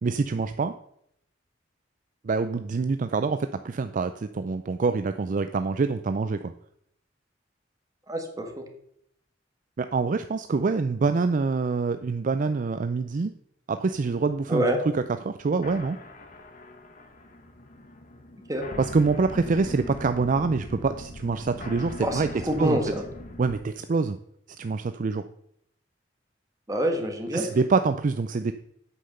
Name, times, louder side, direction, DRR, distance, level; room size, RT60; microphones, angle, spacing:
voice 1, 0.0-0.7 2.2-6.5 9.8-13.3 13.7-14.6 14.9-16.0 18.8-22.3 22.6-22.8 23.4-24.2 24.6-25.2 27.3-28.5, right 4 dB, 45° right, 10 dB, 0.4 m, -25 dB
voice 2, 8.1-8.7 14.5-14.8 18.5-18.7 22.0-23.0 26.7-27.5, equal, 20° right, 4 dB, 1.6 m, -27 dB
sound 1, 13.9-23.6, left 2 dB, 45° left, 1.3 m, -41 dB
8.3 x 5.7 x 6.7 m, 0.72 s
head